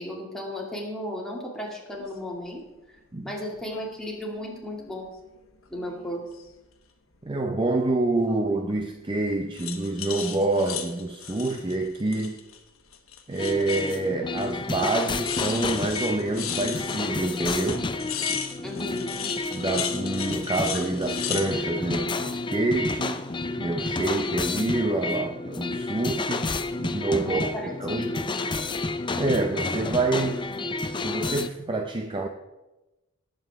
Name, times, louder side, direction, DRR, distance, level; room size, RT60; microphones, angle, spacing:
voice 1, 0.0-2.6 3.2-5.1 5.7-6.2 18.6-19.1 27.3-28.3, left 1 dB, 5° left, -2 dB, 2.3 m, -34 dB
sound 1, 1.9-2.1 3.6-3.9 4.3-5.2 5.6-6.6 8.3-8.7 9.5-12.6 12.9-14.1 14.4-14.5 14.8-21.5, left 9 dB, 70° left, 1.2 m, -36 dB
voice 2, 7.2-12.4 13.3-17.9 19.5-23.2 23.6-28.1 29.2-30.4 31.0-32.3, right 2 dB, 25° right, 5 dB, 0.6 m, -27 dB
sound 2, 13.4-31.5, left 3 dB, 25° left, 0.5 m, -30 dB
18.5 x 7.6 x 3.6 m, 1.0 s
head